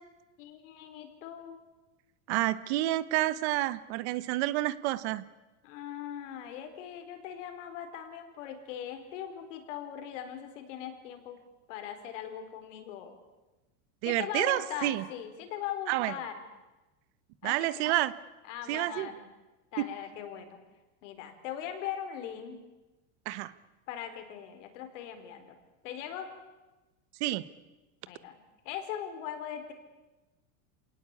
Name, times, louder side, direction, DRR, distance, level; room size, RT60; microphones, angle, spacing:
voice 1, 0.4-1.6 5.6-11.4 11.7-13.2 14.0-16.4 17.4-17.9 18.5-19.2 19.7-20.6 21.0-22.6 23.9-25.6 25.8-26.3 28.1-29.7, left 9 dB, 70° left, 6 dB, 4.4 m, -40 dB
voice 2, 2.3-5.2 14.0-15.0 15.9-16.1 17.4-18.1 18.7-19.1 19.8-19.9 23.2-23.5 27.2-27.4, right 16 dB, 55° right, 16 dB, 1.1 m, -29 dB
27.5 x 18.5 x 8.4 m, 1.1 s
supercardioid pair, 165°, 39 cm